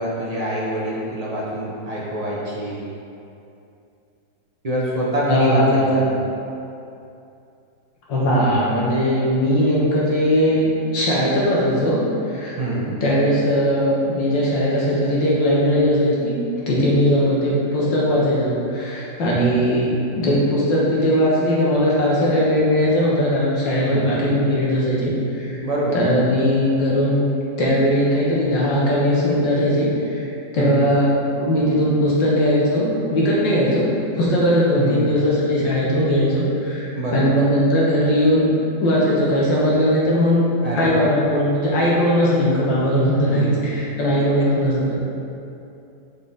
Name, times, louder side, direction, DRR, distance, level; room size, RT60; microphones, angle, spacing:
voice 1, 0.0-2.8 4.6-6.1 12.6-12.9 23.9-24.2 25.6-26.0 30.6-30.8 34.8-35.1 36.9-37.4 40.6-41.1 43.1-43.7, right 1 dB, 45° right, -6 dB, 0.5 m, -25 dB
voice 2, 5.3-6.1 8.1-12.0 12.3-12.6 13.0-16.3 16.7-25.6 25.9-27.3 27.6-30.3 30.5-33.9 34.2-38.5 38.8-40.4 40.7-44.9, equal, 85° left, -6 dB, 2.0 m, -19 dB
6.2 x 4.2 x 3.9 m, 2.7 s
omnidirectional pair, 2.0 m